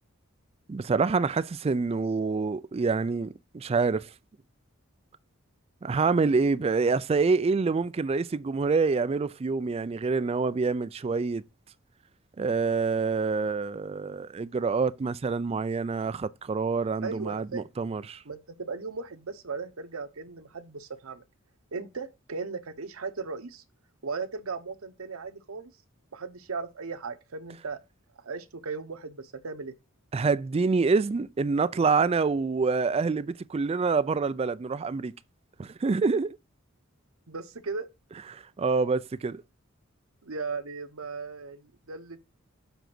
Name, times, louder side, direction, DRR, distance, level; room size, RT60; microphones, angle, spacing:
voice 1, 0.7-4.1 5.8-11.4 12.4-18.2 30.1-35.1 35.6-36.4 38.3-39.4, right 4 dB, 30° right, 0.3 m, -26 dB
voice 2, 17.0-17.6 18.2-21.2 21.7-23.6 24.0-25.7 26.1-27.8 28.2-29.7 37.3-37.9 40.2-42.2, right 4 dB, 90° right, 0.9 m, -37 dB
7.1 x 3.9 x 6.0 m
head